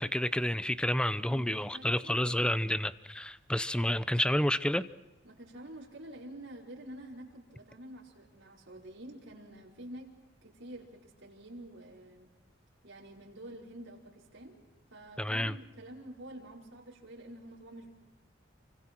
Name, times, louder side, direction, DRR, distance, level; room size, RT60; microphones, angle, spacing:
voice 1, 0.0-4.8 15.2-15.6, left 1 dB, 5° left, 0.7 m, -30 dB
voice 2, 1.2-2.8 3.7-4.0 5.2-10.1 10.4-12.3 12.8-14.6 14.9-17.9, right 1 dB, 85° right, 5.0 m, -48 dB
28.0 x 25.0 x 4.6 m
head